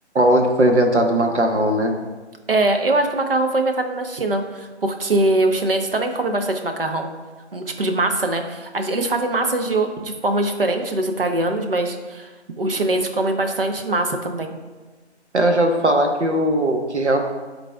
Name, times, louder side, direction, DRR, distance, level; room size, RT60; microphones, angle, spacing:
voice 1, 0.1-2.0 15.3-17.2, right 1 dB, 75° right, 3 dB, 1.2 m, -18 dB
voice 2, 2.5-7.1 7.5-12.3 12.6-14.5, right 2 dB, 55° right, 5 dB, 0.8 m, -22 dB
12.0 x 4.1 x 2.3 m, 1.3 s
figure-of-eight pair, 160°, 34 cm